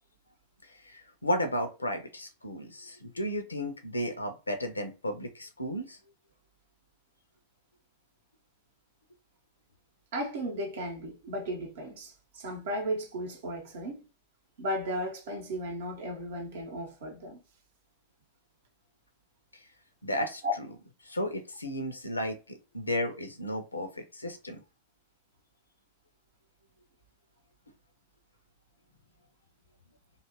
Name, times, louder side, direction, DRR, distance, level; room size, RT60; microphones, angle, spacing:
voice 1, 0.6-6.0 20.0-24.6, equal, 80° left, 0.5 m, -34 dB
voice 2, 10.1-14.0 14.6-17.4 20.4-20.5, equal, 55° right, 0.8 m, -35 dB
2.7 x 2.4 x 2.8 m
figure-of-eight pair, 90°, 0 cm